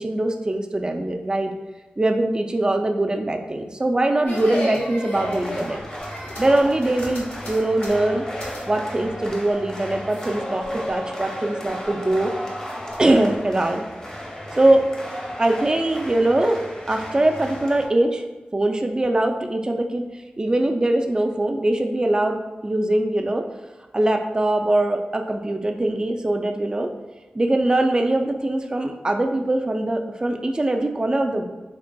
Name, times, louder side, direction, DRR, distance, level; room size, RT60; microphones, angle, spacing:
voice 1, 0.0-1.5 2.0-5.8 6.4-8.2 8.7-12.3 13.0-13.9 14.6-14.8 15.4-18.2 18.5-20.0 20.4-22.4 22.6-23.4 23.9-26.9 27.3-31.4, right 1 dB, 25° right, 4 dB, 0.3 m, -22 dB
sound 1, 4.3-8.7 8.9-9.5 10.1-10.3 10.6-11.0 11.5-12.1 12.7-13.3, equal, 75° left, 1.1 m, -33 dB
sound 2, 5.1-17.9, equal, 25° left, 0.8 m, -34 dB
3.8 x 3.3 x 2.2 m, 1.1 s
wide cardioid pair, 65°, 3 cm